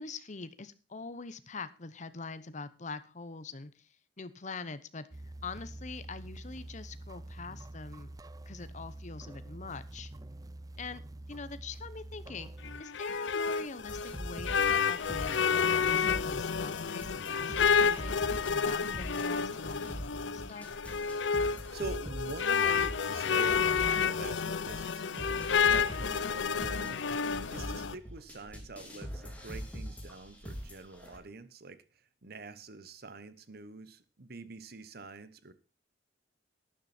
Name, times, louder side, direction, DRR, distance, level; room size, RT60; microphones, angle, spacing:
voice 1, 0.0-3.7 4.2-5.1 5.4-8.1 8.5-10.1 10.8-11.0 11.3-12.5 12.8-20.7, left 4 dB, 40° left, 13 dB, 0.9 m, -44 dB
sound 1, 5.1-12.8, right 1 dB, 20° right, 0.5 m, -46 dB
sound 2, 12.6-27.9, left 6 dB, 85° left, 0.6 m, -30 dB
sound 3, 13.8-31.2, equal, 10° left, 2.9 m, -43 dB
voice 2, 21.7-31.8 32.2-35.5, right 3 dB, 60° right, 14 dB, 1.1 m, -45 dB
12.0 x 10.0 x 4.3 m, 0.33 s
head